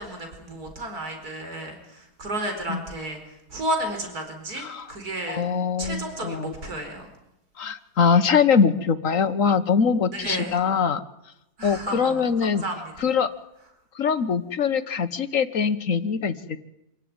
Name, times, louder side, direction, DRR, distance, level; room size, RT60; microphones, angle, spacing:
voice 1, 0.0-3.2 3.5-5.4 5.8-7.1 10.1-10.6 11.6-13.1, right 1 dB, 70° right, 5 dB, 4.9 m, -32 dB
voice 2, 5.3-6.5 7.6-11.0 11.6-12.6 13.0-13.3 13.9-16.6, left 6 dB, 55° left, 12 dB, 1.6 m, -23 dB
26.5 x 17.5 x 9.7 m, 0.87 s
omnidirectional pair, 1.7 m